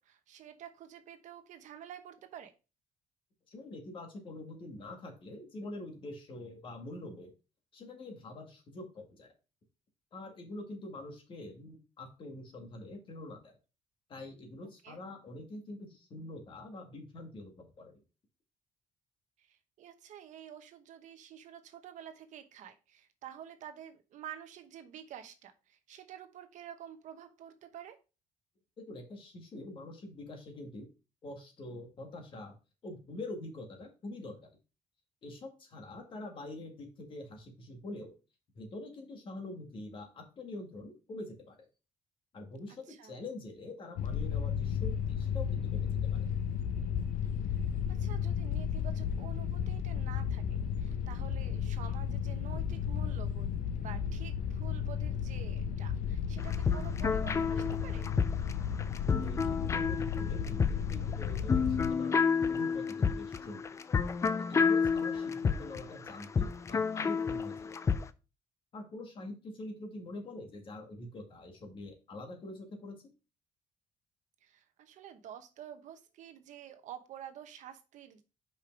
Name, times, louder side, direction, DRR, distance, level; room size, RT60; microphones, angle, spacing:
voice 1, 0.0-2.5 14.8-15.0 19.4-28.0 42.9-43.1 47.9-53.5 53.8-58.0 74.4-78.2, right 10 dB, 65° right, 8 dB, 1.0 m, -49 dB
voice 2, 3.5-7.3 7.7-9.3 10.1-13.6 14.1-18.0 28.9-30.9 31.2-32.5 32.8-34.5 35.2-38.1 38.6-41.7 42.3-46.3 59.1-62.2 62.5-63.8 64.5-68.0 68.7-73.0, left 2 dB, 40° left, 3 dB, 1.9 m, -45 dB
sound 1, 44.0-61.9, left 8 dB, 75° left, 0.7 m, -34 dB
sound 2, 56.4-68.0, left 5 dB, 20° left, 0.4 m, -30 dB
5.5 x 5.1 x 4.5 m, 0.31 s
cardioid pair, 160°, 14 cm